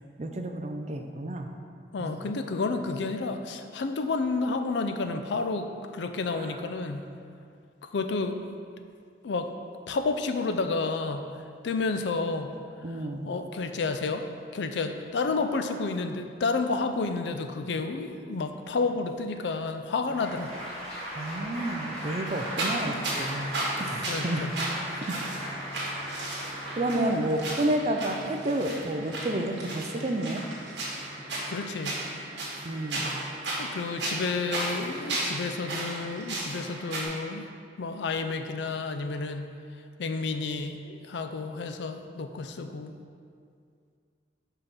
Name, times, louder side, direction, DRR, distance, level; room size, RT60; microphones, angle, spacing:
voice 1, 0.2-1.5 2.0-2.2 6.3-6.6 12.8-13.3 21.2-23.5 23.8-24.5 25.0-25.2 26.4-30.4 32.6-33.2, right 1 dB, 35° right, 4 dB, 0.4 m, -30 dB
voice 2, 1.9-7.1 7.8-8.4 9.2-9.5 9.9-11.3 11.6-12.5 13.3-14.2 14.5-20.5 24.1-24.5 31.5-32.0 33.6-37.5 37.8-39.5 40.0-42.9, left 3 dB, 75° left, 7 dB, 0.4 m, -30 dB
Applause, 20.0-27.8, equal, 5° left, 1.7 m, -38 dB
sound 1, 22.3-37.1, right 1 dB, 85° right, 1.6 m, -35 dB
5.4 x 4.0 x 5.9 m, 2.3 s
head